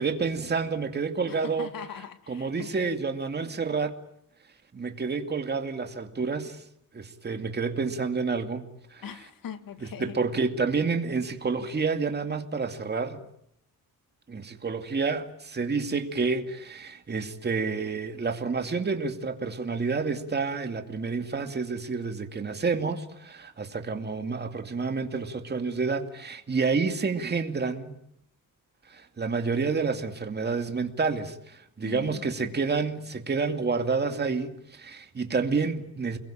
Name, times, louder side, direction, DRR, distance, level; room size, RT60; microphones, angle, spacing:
voice 1, 0.0-1.7 2.3-4.0 4.7-6.6 6.9-8.7 8.9-9.1 9.8-13.2 14.3-27.9 28.9-36.2, right 4 dB, 30° right, 2.5 m, -29 dB
voice 2, 1.3-2.9 9.0-10.2 31.8-32.5, left 8 dB, 70° left, 2.1 m, -41 dB
29.5 x 22.0 x 8.9 m
wide cardioid pair, 150°, 35 cm